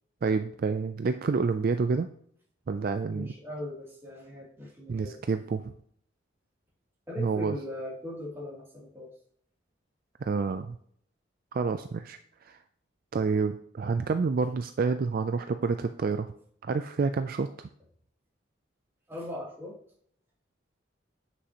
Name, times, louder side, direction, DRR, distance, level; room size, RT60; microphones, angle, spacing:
voice 1, 0.2-2.1 2.7-3.3 4.9-5.7 7.2-7.6 10.2-10.8 11.5-12.6 13.1-16.3 16.6-17.7, right 4 dB, 50° right, 9 dB, 0.4 m, -28 dB
voice 2, 3.1-5.2 7.1-9.1 19.1-19.8, left 1 dB, 15° right, -5 dB, 2.9 m, -39 dB
9.6 x 6.2 x 2.9 m, 0.62 s
head